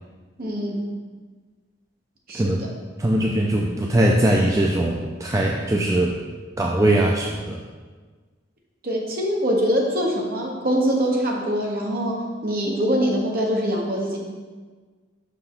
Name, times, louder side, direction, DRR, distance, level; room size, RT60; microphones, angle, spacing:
voice 1, 0.4-0.9 2.3-2.7 8.8-14.2, equal, 45° right, -1 dB, 1.1 m, -23 dB
voice 2, 2.3-2.7 3.0-6.2 6.6-7.6, right 1 dB, 15° right, -1 dB, 0.3 m, -21 dB
5.9 x 5.6 x 3.8 m, 1.4 s
head